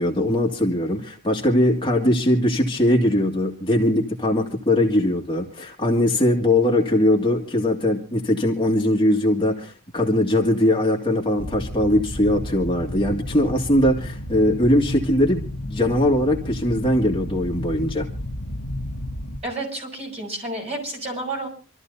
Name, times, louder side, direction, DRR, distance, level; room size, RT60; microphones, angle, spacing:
voice 1, 0.0-18.1, left 1 dB, 25° left, 0 dB, 2.1 m, -21 dB
sound 1, 11.4-19.4, left 1 dB, 70° left, 1.6 m, -32 dB
voice 2, 19.4-21.5, right 2 dB, 30° right, 0 dB, 6.5 m, -30 dB
27.0 x 13.5 x 2.7 m, 0.35 s
head